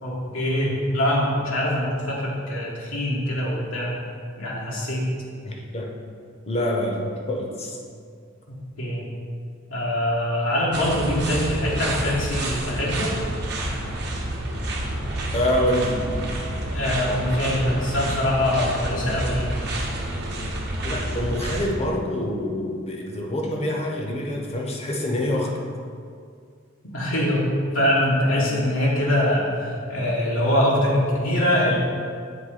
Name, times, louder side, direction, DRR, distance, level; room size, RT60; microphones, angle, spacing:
voice 1, 0.0-3.9 4.4-5.1 8.5-9.1 9.7-13.2 16.7-19.6 26.9-31.8, left 1 dB, 85° left, -5 dB, 1.4 m, -23 dB
voice 2, 5.4-6.0 6.4-7.8 15.3-16.0 20.8-25.6 28.3-28.4, left 1 dB, 30° left, 1 dB, 0.8 m, -26 dB
sound 1, 10.7-21.7, right 1 dB, 55° right, 1.0 m, -29 dB
7.9 x 3.3 x 5.0 m, 2.2 s
head